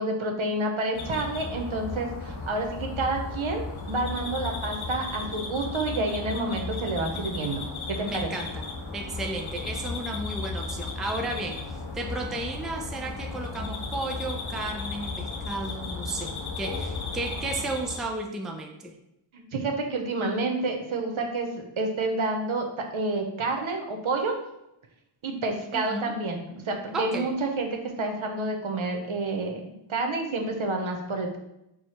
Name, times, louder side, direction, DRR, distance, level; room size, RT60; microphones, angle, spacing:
voice 1, 0.0-7.6 7.9-8.3 19.3-24.4 25.2-31.4, right 2 dB, 70° right, 2 dB, 0.8 m, -29 dB
sound 1, 0.9-18.0, left 3 dB, 70° left, 0.9 m, -35 dB
voice 2, 8.0-8.6 8.9-18.9 25.7-26.1 26.9-27.3, right 2 dB, ahead, 2 dB, 0.4 m, -33 dB
4.6 x 2.1 x 4.1 m, 0.86 s
wide cardioid pair, 85°, 50 cm